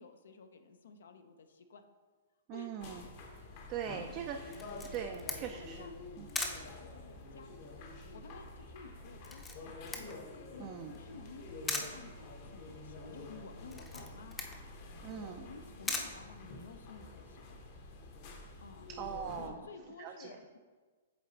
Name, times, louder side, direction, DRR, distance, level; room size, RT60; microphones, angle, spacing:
voice 1, 0.0-1.8 2.5-2.8 3.9-4.2 5.5-6.0 6.3-7.7 8.1-9.8 10.3-14.4 15.1-17.6 18.6-18.9 19.4-20.6, left 5 dB, 75° left, 7 dB, 0.6 m, -53 dB
voice 2, 2.5-3.0 3.7-4.5 4.9-5.9 6.2-6.3 10.6-10.9 15.0-15.4 19.0-19.6 20.0-20.4, right 8 dB, 35° right, 4 dB, 0.4 m, -41 dB
sound 1, 2.8-19.5, left 2 dB, 45° left, 0.9 m, -48 dB
Camera, 4.5-17.0, left 3 dB, 10° left, 0.6 m, -43 dB
7.7 x 3.2 x 4.0 m, 1.4 s
hypercardioid pair, 135°, 0 cm